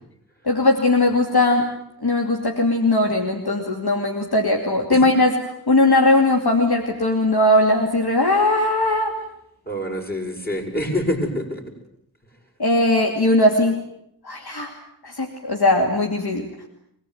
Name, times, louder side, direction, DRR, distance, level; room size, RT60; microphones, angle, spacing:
voice 1, 0.4-1.7 2.0-5.3 5.7-9.1 12.6-13.8 14.2-14.7 15.0-16.4, left 2 dB, 75° left, 2 dB, 2.7 m, -19 dB
voice 2, 9.7-11.6, left 1 dB, 25° left, 1 dB, 7.0 m, -26 dB
24.5 x 19.0 x 9.5 m, 0.76 s
wide cardioid pair, 45°, 39 cm